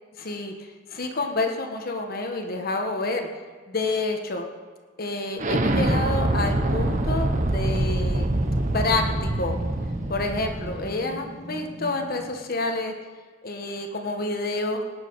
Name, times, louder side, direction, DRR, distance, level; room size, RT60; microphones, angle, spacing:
voice 1, 0.2-0.5 0.9-3.3 3.7-4.5 5.0-8.3 8.7-9.6 10.1-12.9 13.4-14.8, left 2 dB, 50° left, 3 dB, 1.3 m, -28 dB
Explosion, 5.4-10.9, right 1 dB, 40° right, 0.9 m, -25 dB
sound 1, 5.7-12.4, equal, 20° right, 2.1 m, -41 dB
19.5 x 9.5 x 4.8 m, 1.5 s
head